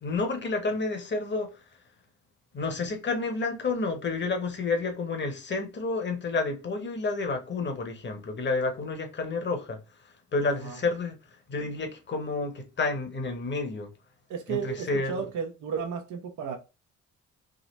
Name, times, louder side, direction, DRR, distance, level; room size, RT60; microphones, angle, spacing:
voice 1, 0.0-1.5 2.5-9.8 10.3-11.2 11.5-13.9 14.5-15.1, left 3 dB, 35° left, 1.2 m, -30 dB
voice 2, 14.3-16.6, right 7 dB, 80° right, 0.8 m, -33 dB
3.7 x 2.5 x 3.1 m
cardioid pair, 90°, 30 cm